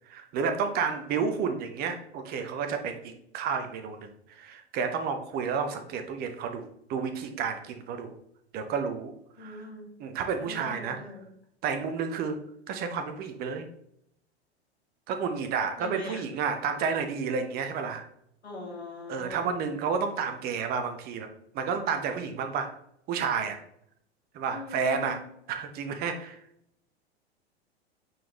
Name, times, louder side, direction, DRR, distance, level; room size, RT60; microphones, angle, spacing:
voice 1, 0.1-6.6 6.9-8.1 8.5-9.1 9.4-9.7 10.0-11.0 11.6-12.4 12.7-13.6 15.1-18.0 19.1-21.3 21.5-22.7 23.1-23.6 24.3-25.2 25.5-26.4, right 6 dB, 30° right, 7 dB, 0.9 m, -31 dB
voice 2, 9.4-9.9 10.3-11.2 15.8-16.2 18.4-19.4 24.5-25.2, left 2 dB, 75° left, 1 dB, 1.8 m, -41 dB
9.0 x 4.1 x 3.0 m, 0.72 s
figure-of-eight pair, 95°, 33 cm